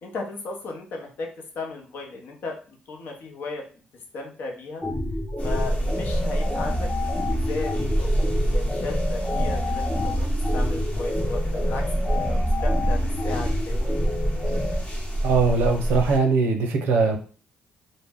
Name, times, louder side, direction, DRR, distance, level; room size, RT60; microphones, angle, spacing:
voice 1, 0.0-3.8 4.1-4.8 5.1-14.0, left 3 dB, 70° left, 1 dB, 0.7 m, -36 dB
sound 1, 4.8-14.8, left 1 dB, 10° left, 0.5 m, -29 dB
sound 2, 5.4-16.2, right 1 dB, 35° left, 0.9 m, -26 dB
voice 2, 15.2-17.2, right 4 dB, 80° right, 4 dB, 0.5 m, -21 dB
2.1 x 2.0 x 3.4 m, 0.38 s
supercardioid pair, 65°, 3 cm